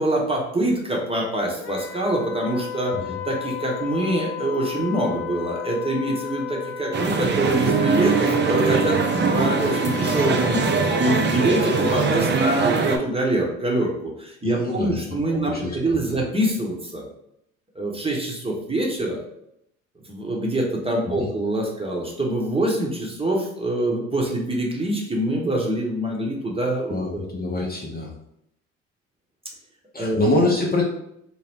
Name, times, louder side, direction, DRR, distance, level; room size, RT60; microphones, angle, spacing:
voice 1, 0.0-2.9 3.2-9.0 9.3-10.6 11.0-17.0 17.7-19.2 20.1-27.2 30.0-30.2, right 1 dB, 15° right, -1 dB, 0.9 m, -24 dB
Wind instrument woodwind instrument, 1.6-12.0, left 12 dB, 80° left, 0.6 m, -34 dB
sound 1, 6.9-13.0, right 5 dB, 30° right, 0.5 m, -22 dB
voice 2, 14.4-15.0 15.5-15.8 16.1-16.2 21.1-21.3 26.9-28.1 29.9-30.8, left 2 dB, 25° left, -2 dB, 0.7 m, -25 dB
2.8 x 2.1 x 3.5 m, 0.76 s
hypercardioid pair, 55°, 36 cm